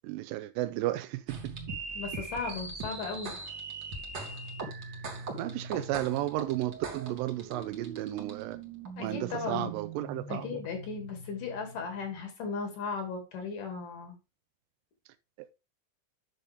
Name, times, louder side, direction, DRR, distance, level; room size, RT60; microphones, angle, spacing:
voice 1, 0.0-1.5 5.4-8.6 9.0-10.6 15.4-15.5, right 15 dB, 90° right, 2.3 m, -33 dB
sound 1, 1.3-12.0, right 3 dB, 40° right, 1.8 m, -41 dB
voice 2, 2.0-3.4 9.0-9.8 10.3-14.1, left 5 dB, 70° left, 3.9 m, -36 dB
9.4 x 6.4 x 3.5 m
omnidirectional pair, 3.9 m